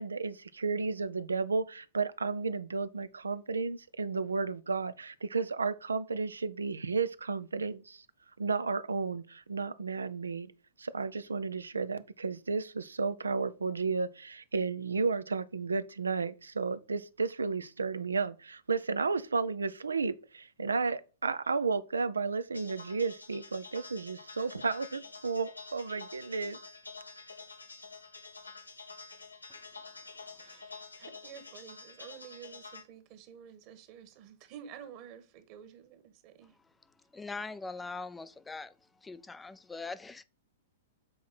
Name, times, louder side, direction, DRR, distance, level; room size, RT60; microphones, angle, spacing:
voice 1, 0.0-8.0 8.4-10.5 10.8-26.6, right 4 dB, 75° right, 0.6 m, -33 dB
sound 1, 22.5-32.8, left 4 dB, 90° left, 1.4 m, -48 dB
voice 2, 30.4-36.5, right 8 dB, 40° right, 1.5 m, -50 dB
voice 3, 37.1-38.7 39.0-40.2, left 3 dB, 10° left, 0.5 m, -41 dB
7.7 x 4.7 x 4.2 m
figure-of-eight pair, 105°, 0 cm